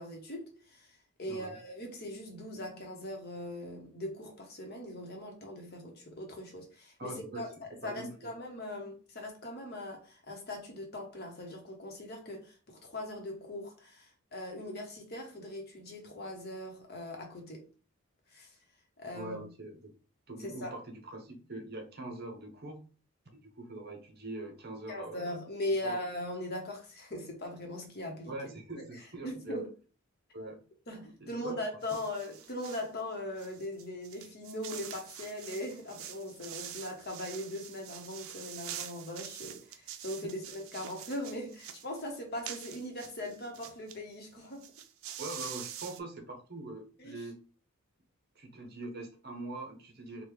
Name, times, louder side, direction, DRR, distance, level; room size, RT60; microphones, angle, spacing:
voice 1, 0.0-17.6 18.3-18.5 19.0-19.5 20.4-20.8 24.9-29.7 30.9-44.7 47.0-47.3, left 1 dB, 50° left, 0.9 m, -40 dB
voice 2, 7.0-7.5 7.8-8.3 19.1-19.9 20.3-22.8 23.4-25.2 25.8-26.0 28.3-29.6 30.3-30.6 31.2-31.6 45.2-47.4 48.3-50.2, right 2 dB, 50° right, 0.8 m, -43 dB
sound 1, 31.8-32.9 33.4-44.0 44.2-44.3 44.5-46.0, right 10 dB, 80° right, 0.4 m, -45 dB
3.6 x 2.2 x 3.1 m
head